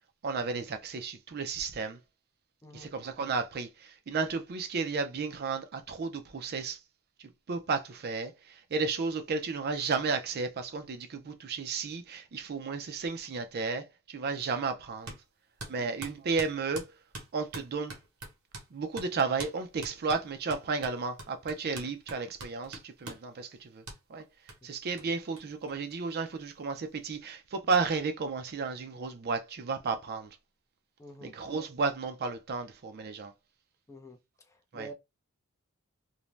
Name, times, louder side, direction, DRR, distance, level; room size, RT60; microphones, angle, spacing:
voice 1, 0.2-2.0 2.7-6.8 7.2-15.2 15.7-16.9 17.3-18.0 18.7-23.8 24.1-24.3 24.6-30.4 31.2-33.3 34.7-34.9, right 4 dB, 45° right, 0.4 m, -33 dB
voice 2, 2.6-2.9 31.0-31.3 33.9-34.2 34.7-34.9, equal, 15° left, 0.4 m, -47 dB
sound 1, 15.1-15.2 15.6-18.7 19.0-19.1 19.4-19.6 19.8-23.3 23.9-24.0 24.5-24.6 25.0-25.1 25.4-25.5 25.7-26.4, right 2 dB, 75° right, 1.0 m, -44 dB
2.6 x 2.1 x 3.1 m
head